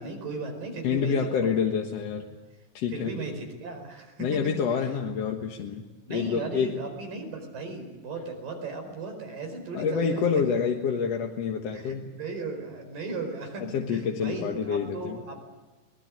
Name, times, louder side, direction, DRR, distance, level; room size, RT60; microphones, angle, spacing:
voice 1, 0.0-1.6 2.9-4.3 6.1-10.4 11.7-13.6 13.9-15.5, right 3 dB, 90° right, 4 dB, 6.4 m, -36 dB
voice 2, 0.8-2.3 2.7-3.1 4.2-5.8 6.1-6.8 9.7-12.1 13.6-15.2, left 6 dB, 55° left, 2 dB, 2.3 m, -27 dB
23.0 x 20.0 x 9.9 m, 1.2 s
omnidirectional pair, 3.8 m